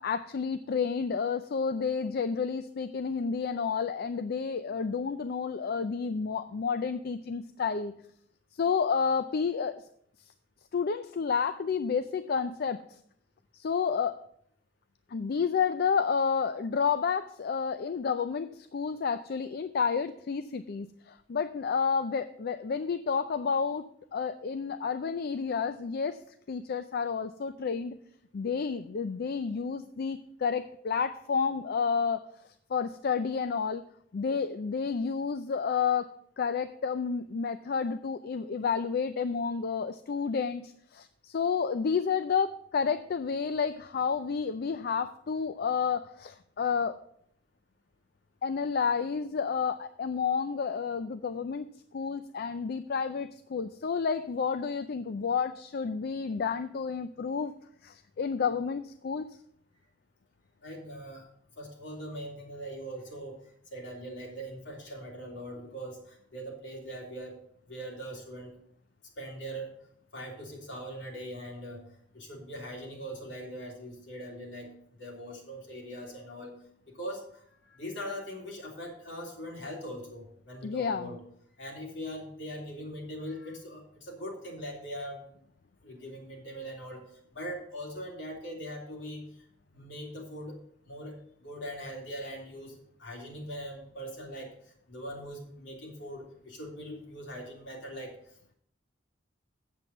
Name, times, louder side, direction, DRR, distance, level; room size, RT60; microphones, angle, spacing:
voice 1, 0.0-7.9 8.5-9.8 10.7-12.8 13.5-14.2 15.1-23.9 24.1-26.2 26.5-28.0 28.3-32.2 32.7-33.8 34.1-36.1 36.4-47.0 48.4-51.7 51.9-57.5 57.8-59.3 80.6-81.1, left 6 dB, 55° left, 11 dB, 0.4 m, -30 dB
voice 2, 60.6-61.2 61.6-63.4 63.7-67.4 67.7-68.6 69.2-69.8 70.1-71.8 72.1-74.7 75.0-76.5 76.9-81.2 81.6-85.2 85.8-89.4 89.7-90.6 90.8-94.5 94.9-98.1, equal, 75° left, -1 dB, 3.2 m, -41 dB
7.9 x 7.6 x 7.0 m, 0.69 s
head